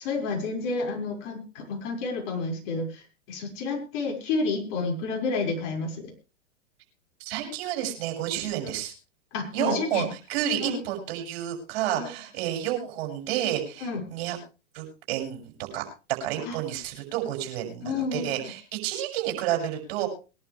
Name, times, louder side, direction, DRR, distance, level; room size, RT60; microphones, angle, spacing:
voice 1, 0.0-3.0 3.3-6.1 8.6-8.7 9.3-10.1 10.6-10.8 12.0-12.1 13.8-14.0 16.5-16.6 17.8-18.3, left 3 dB, 50° left, 1 dB, 5.9 m, -30 dB
voice 2, 7.2-8.9 9.5-14.4 14.7-15.8 16.2-20.1, right 11 dB, 55° right, 3 dB, 6.5 m, -30 dB
22.5 x 11.5 x 3.4 m, 0.32 s
hypercardioid pair, 110°, 37 cm